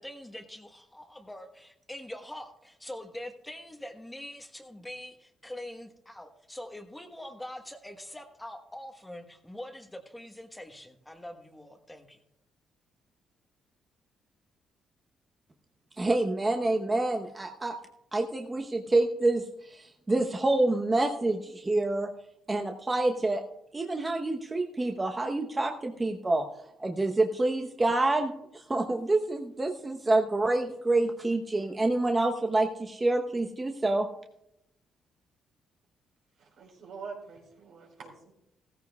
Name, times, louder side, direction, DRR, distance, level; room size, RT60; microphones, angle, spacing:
voice 1, 0.0-12.2, left 1 dB, 10° left, 5 dB, 1.3 m, -44 dB
voice 2, 16.0-17.8 18.1-22.1 22.5-23.4 23.7-26.5 26.8-34.1, right 2 dB, 20° right, 2 dB, 1.0 m, -27 dB
voice 3, 36.4-38.3, right 5 dB, 75° right, 0 dB, 4.3 m, -45 dB
15.5 x 14.5 x 2.4 m, 0.82 s
cardioid pair, 90°, 0 cm